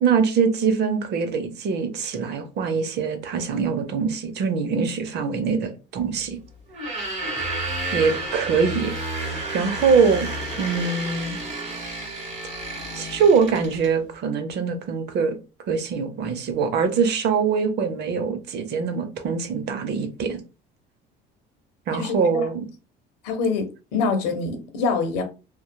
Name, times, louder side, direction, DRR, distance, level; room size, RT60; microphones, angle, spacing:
voice 1, 0.0-6.4 7.9-9.0 9.5-10.3 10.6-11.4 12.9-15.3 15.7-20.4 21.9-22.7, right 5 dB, 55° right, 0.7 m, -23 dB
sound 1, 6.7-13.9, right 2 dB, 40° right, 1.4 m, -31 dB
voice 2, 21.9-22.5 23.2-25.2, left 4 dB, 90° left, 0.8 m, -25 dB
2.9 x 2.2 x 2.2 m
supercardioid pair, 95°, 20 cm